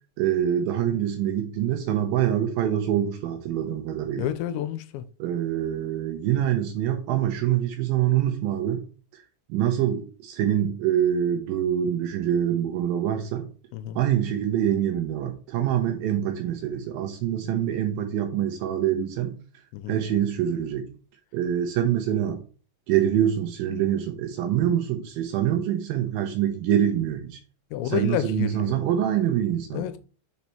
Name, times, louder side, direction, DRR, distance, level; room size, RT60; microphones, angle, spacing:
voice 1, 0.2-4.3 5.2-8.8 9.1-9.2 9.5-13.5 14.0-19.4 19.9-20.9 21.3-22.4 22.9-27.4 27.8-29.9, right 10 dB, 85° right, 2.0 m, -25 dB
voice 2, 4.2-5.1 13.7-14.0 19.7-20.0 27.7-28.8 29.7-30.0, left 11 dB, 85° left, 2.9 m, -29 dB
6.7 x 4.2 x 4.4 m
omnidirectional pair, 5.1 m